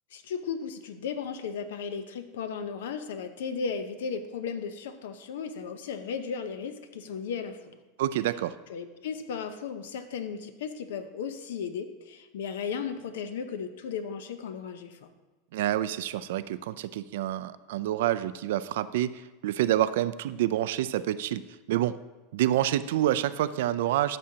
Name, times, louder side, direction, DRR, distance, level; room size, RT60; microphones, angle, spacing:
voice 1, 0.1-7.8 8.7-15.1, left 6 dB, 85° left, 10 dB, 0.7 m, -35 dB
voice 2, 8.0-8.5 15.5-21.4 21.7-22.0 22.3-24.2, right 13 dB, 75° right, 15 dB, 0.4 m, -27 dB
13.0 x 6.2 x 2.8 m, 1.2 s
supercardioid pair, 130°, 0 cm